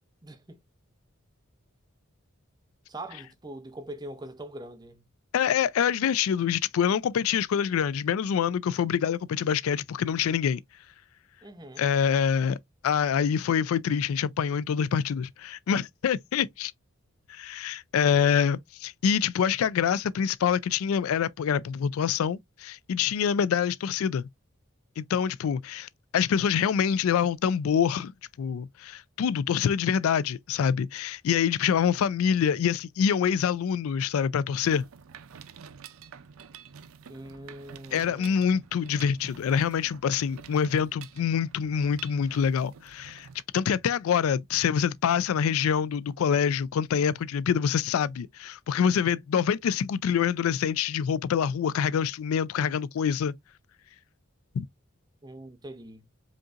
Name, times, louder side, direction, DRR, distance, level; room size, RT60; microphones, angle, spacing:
voice 1, 0.2-0.6 2.9-5.1 11.4-11.9 37.1-38.5 55.2-56.1, right 1 dB, 20° right, 0.6 m, -42 dB
voice 2, 5.3-10.6 11.8-12.6 12.8-16.7 17.3-24.2 25.0-28.1 28.4-34.8 37.9-43.3 43.5-53.3 54.5-54.7, left 7 dB, 80° left, 0.3 m, -26 dB
Mechanisms, 34.6-43.4, right 7 dB, 80° right, 0.5 m, -49 dB
5.1 x 2.8 x 2.4 m
head